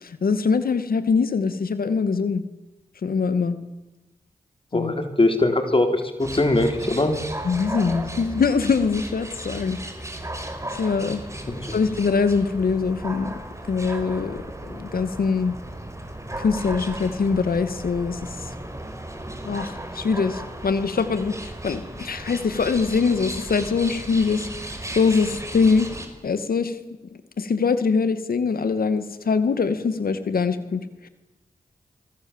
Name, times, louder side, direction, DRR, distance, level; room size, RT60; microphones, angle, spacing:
voice 1, 0.0-2.4 3.0-3.6 4.7-4.9 7.4-9.8 10.8-11.2 11.7-13.3 13.7-14.4 14.7-15.6 16.4-18.5 19.4-24.5 25.0-25.9 26.2-26.8 27.4-31.1, left 5 dB, 75° left, 11 dB, 2.3 m, -23 dB
voice 2, 4.7-7.2 11.5-11.8, left 2 dB, 35° left, 6 dB, 4.0 m, -21 dB
sound 1, 6.2-26.1, right 1 dB, 20° right, 5.3 m, -35 dB
25.5 x 23.5 x 7.5 m, 1.0 s
cardioid pair, 55°, 15 cm